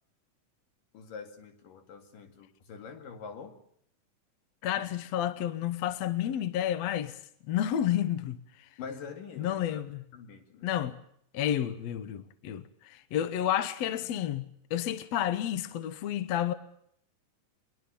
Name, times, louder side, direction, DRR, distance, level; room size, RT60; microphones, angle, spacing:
voice 1, 0.9-3.6 8.8-9.8 10.1-10.7, left 5 dB, 90° left, 4.0 m, -44 dB
voice 2, 4.6-7.2 7.4-8.4 9.4-10.0 10.6-11.0 11.3-16.5, left 11 dB, 65° left, 2.0 m, -30 dB
22.5 x 22.0 x 6.9 m
omnidirectional pair, 3.7 m